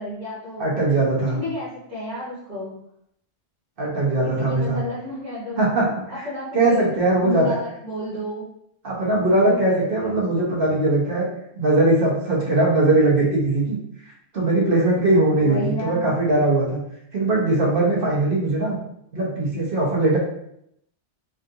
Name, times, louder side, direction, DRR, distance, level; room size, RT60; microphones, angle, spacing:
voice 1, 0.0-0.7 1.3-2.8 4.2-8.5 9.4-10.5 15.4-16.1, left 1 dB, 15° right, -9 dB, 1.2 m, -31 dB
voice 2, 0.6-1.4 3.8-4.8 5.6-5.8 6.1-6.3 6.5-7.5 8.8-11.3 11.6-13.8 14.3-16.8 17.1-18.8 19.1-20.2, right 2 dB, 55° right, -4 dB, 1.1 m, -20 dB
3.5 x 2.5 x 2.7 m, 0.74 s
omnidirectional pair, 1.2 m